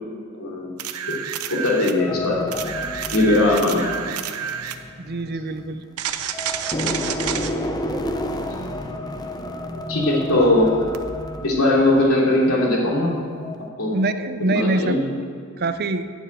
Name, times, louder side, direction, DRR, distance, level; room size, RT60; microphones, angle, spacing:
voice 1, 0.4-1.2 1.5-2.5 3.1-4.0 9.9-10.7 11.4-13.1 13.8-14.0 14.5-15.0, left 1 dB, 75° left, -3 dB, 3.1 m, -20 dB
sound 1, 0.8-2.0 2.5-4.8 6.0-7.5 10.9-11.0, right 8 dB, 90° right, 0.8 m, -29 dB
sound 2, 2.0-6.0 6.3-13.1 13.4-13.7, left 1 dB, 20° left, 0.8 m, -31 dB
voice 2, 5.0-5.8 13.9-15.0 15.6-16.1, right 2 dB, 45° right, 11 dB, 0.6 m, -24 dB
12.0 x 7.2 x 9.0 m, 2.2 s
head